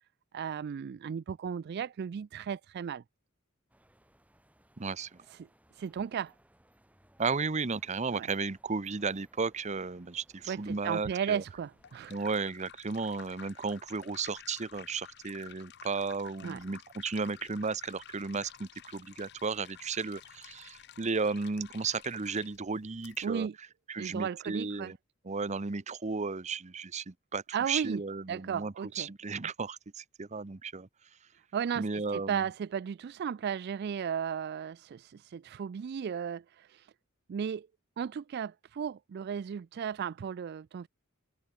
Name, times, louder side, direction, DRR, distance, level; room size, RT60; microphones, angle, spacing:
voice 1, 0.3-3.0 5.3-5.5 5.7-6.3 8.1-8.3 10.5-12.2 16.4-16.6 23.2-23.5 24.0-24.9 27.5-28.0 28.3-29.1 31.5-36.9 37.3-37.7 38.0-40.9, right 7 dB, 50° right, 0.3 m, -35 dB
sound 1, 3.7-12.3, right 1 dB, 5° right, 7.1 m, -65 dB
voice 2, 4.8-5.1 7.2-11.4 12.1-23.5 23.9-25.0 25.2-30.9 31.8-32.4, right 4 dB, 35° right, 0.7 m, -34 dB
sound 2, 11.5-23.3, left 10 dB, 55° left, 0.8 m, -53 dB
head